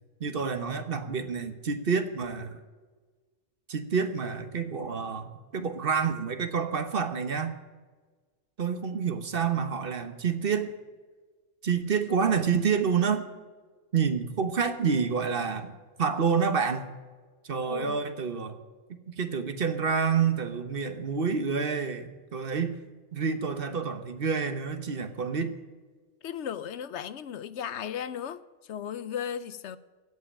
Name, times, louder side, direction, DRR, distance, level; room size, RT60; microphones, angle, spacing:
voice 1, 0.2-2.6 3.7-7.5 8.6-10.7 11.6-13.2 13.9-16.9 17.4-18.6 18.9-22.8 23.1-25.6, right 6 dB, 50° right, 1.2 m, -28 dB
voice 2, 17.7-18.0 26.2-28.4 28.7-29.8, left 9 dB, 70° left, 0.9 m, -35 dB
16.0 x 5.8 x 10.0 m
omnidirectional pair, 1.3 m